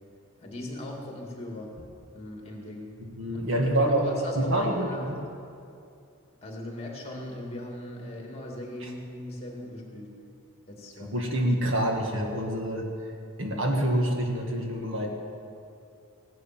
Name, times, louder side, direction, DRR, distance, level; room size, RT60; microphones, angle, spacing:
voice 1, 0.4-1.8 2.1-2.9 3.5-5.2 6.4-10.2 10.7-11.1, left 1 dB, 30° left, 0 dB, 2.3 m, -39 dB
voice 2, 3.0-5.2 8.8-8.9 11.1-12.9 13.4-15.1, right 1 dB, 60° right, 1 dB, 1.8 m, -27 dB
16.5 x 10.5 x 6.1 m, 2.5 s
head